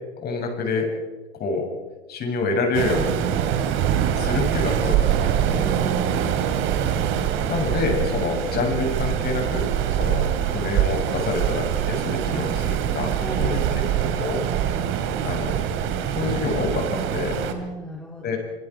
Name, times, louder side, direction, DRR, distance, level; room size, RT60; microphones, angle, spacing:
voice 1, 0.2-0.9 1.4-1.7 2.1-3.2 4.1-5.3 7.5-9.7 10.0-13.6 14.0-14.4 15.2-15.6 16.2-17.4 18.2-18.4, left 4 dB, 30° left, 2 dB, 7.5 m, -27 dB
Waves surf, 2.7-17.5, right 9 dB, 40° right, 2.8 m, -24 dB
voice 2, 5.5-6.4 13.2-13.6 17.4-18.4, right 2 dB, 5° left, -1 dB, 3.2 m, -34 dB
26.5 x 26.0 x 4.9 m, 1.2 s
hypercardioid pair, 100°, 33 cm